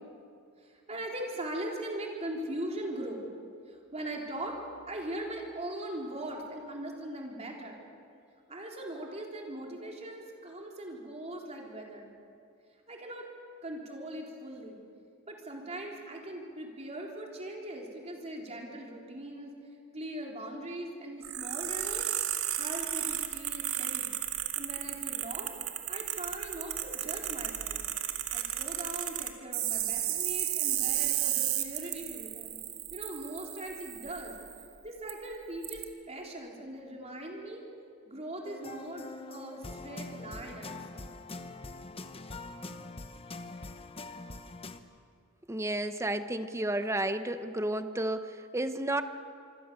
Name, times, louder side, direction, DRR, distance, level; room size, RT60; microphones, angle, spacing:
voice 1, 0.6-3.2 3.7-4.6 4.9-7.8 8.5-12.1 12.9-13.3 13.6-14.8 15.3-19.5 19.9-22.1 22.5-24.1 24.6-25.5 25.9-27.8 28.3-32.6 32.9-34.4 34.8-37.6 38.1-41.1, right 1 dB, 30° right, 0 dB, 3.8 m, -40 dB
sound 1, 21.2-34.6 35.1-35.2 35.6-35.8, right 12 dB, 70° right, 2.0 m, -34 dB
sound 2, 38.4-44.8, left 2 dB, 25° left, 1.0 m, -43 dB
voice 2, 45.5-49.0, right 1 dB, 15° right, 10 dB, 0.9 m, -32 dB
26.5 x 25.0 x 6.9 m, 2.4 s
head